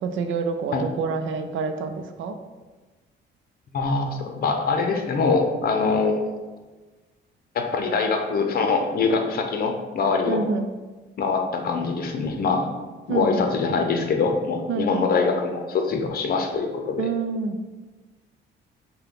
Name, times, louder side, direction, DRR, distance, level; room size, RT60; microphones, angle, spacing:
voice 1, 0.0-2.4 10.3-10.7 13.1-13.4 14.7-15.1 17.0-17.6, right 4 dB, 75° right, 7 dB, 0.5 m, -27 dB
voice 2, 3.7-6.4 7.5-10.4 11.2-12.7 13.1-17.1, left 4 dB, 50° left, 4 dB, 0.7 m, -23 dB
5.5 x 2.2 x 3.7 m, 1.3 s
cardioid pair, 90°, 20 cm